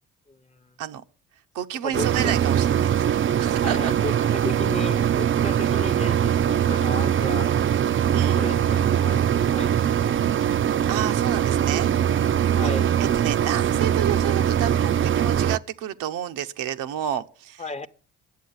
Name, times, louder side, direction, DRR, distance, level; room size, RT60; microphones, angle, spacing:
voice 1, 0.3-0.7 1.8-2.3 3.6-7.5 8.4-9.7 10.0-10.2 12.5-12.9 17.6-17.9, left 3 dB, 20° left, 0.8 m, -35 dB
voice 2, 1.5-3.0 3.4-3.9 8.1-8.5 10.9-11.9 12.4-12.7 13.0-17.9, right 10 dB, 80° right, 0.9 m, -30 dB
sound 1, 1.9-15.6, right 9 dB, 40° right, 0.5 m, -22 dB
10.5 x 7.7 x 8.0 m
supercardioid pair, 70°, 32 cm